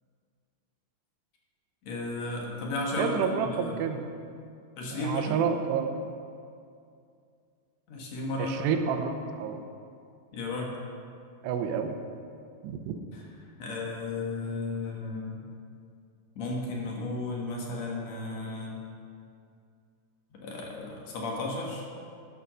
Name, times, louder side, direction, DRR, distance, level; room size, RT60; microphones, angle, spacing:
voice 1, 1.8-3.7 4.8-5.4 7.9-8.6 10.3-10.7 13.6-15.5 16.4-18.8 20.4-21.9, left 2 dB, 60° left, -2 dB, 1.9 m, -34 dB
voice 2, 3.0-4.0 4.9-5.9 8.4-9.6 11.4-12.0 12.6-13.0, right 7 dB, 85° right, 6 dB, 2.9 m, -29 dB
11.0 x 6.7 x 6.2 m, 2.4 s
omnidirectional pair, 4.7 m